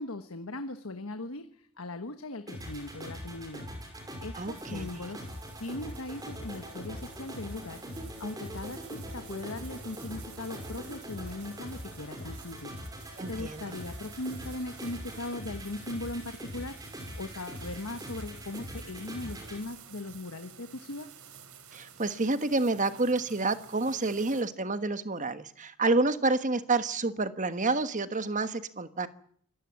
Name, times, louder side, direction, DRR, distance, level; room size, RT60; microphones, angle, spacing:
voice 1, 0.0-3.6 4.2-5.3 5.6-21.1, left 2 dB, 70° left, 9 dB, 1.3 m, -39 dB
sound 1, 2.5-19.6, equal, 15° right, 6.0 m, -42 dB
voice 2, 4.4-4.9 13.2-13.7 21.7-29.1, right 3 dB, 35° right, 12 dB, 1.3 m, -29 dB
sound 2, 4.5-24.4, right 7 dB, 75° right, 3.2 m, -52 dB
26.5 x 15.0 x 9.5 m, 0.63 s
head